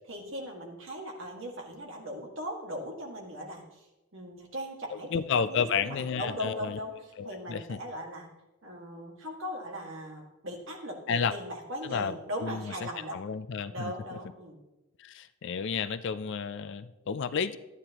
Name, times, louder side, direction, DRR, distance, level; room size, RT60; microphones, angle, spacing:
voice 1, 0.1-3.9 4.1-5.1 5.5-8.3 8.6-13.1 13.7-14.6, equal, 60° right, 0 dB, 1.9 m, -39 dB
voice 2, 4.9-6.8 7.2-7.8 11.1-11.3 11.8-13.9 15.0-17.6, left 6 dB, 55° left, 13 dB, 0.4 m, -32 dB
12.5 x 9.8 x 3.0 m, 1.0 s
head